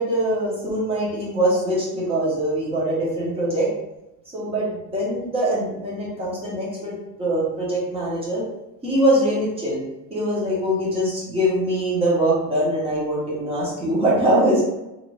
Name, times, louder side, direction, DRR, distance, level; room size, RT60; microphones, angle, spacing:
voice 1, 0.0-3.7 4.3-8.4 8.8-9.8 10.1-14.6, right 1 dB, 15° right, -6 dB, 0.8 m, -23 dB
2.7 x 2.4 x 3.0 m, 0.93 s
cardioid pair, 175°, 40 cm